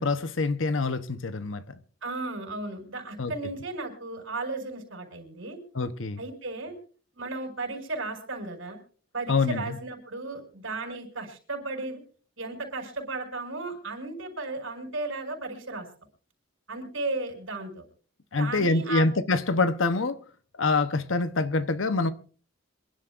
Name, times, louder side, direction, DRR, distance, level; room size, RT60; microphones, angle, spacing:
voice 1, 0.0-1.6 3.2-3.3 5.7-6.2 9.3-9.8 18.3-20.2 20.6-22.1, left 3 dB, 75° left, 0.9 m, -25 dB
voice 2, 2.0-5.6 6.2-6.8 7.1-8.8 9.1-12.0 12.4-15.9 16.7-17.9 18.4-19.1, right 3 dB, 80° right, 6.0 m, -35 dB
27.0 x 11.5 x 2.5 m
head